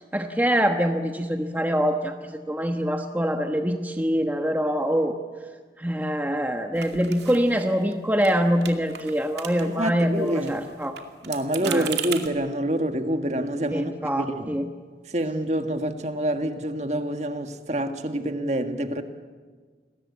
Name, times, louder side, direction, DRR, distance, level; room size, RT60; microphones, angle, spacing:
voice 1, 0.0-5.1 5.8-10.9 11.6-11.9 13.7-14.7, equal, 10° right, 5 dB, 1.2 m, -24 dB
sound 1, 6.8-7.9 8.2-8.4 8.6-9.9 10.2-12.3, right 9 dB, 75° right, 2.4 m, -36 dB
voice 2, 9.6-10.6 11.2-14.6 15.1-19.0, right 1 dB, 40° right, 7 dB, 1.7 m, -27 dB
29.5 x 21.0 x 8.5 m, 1.5 s
head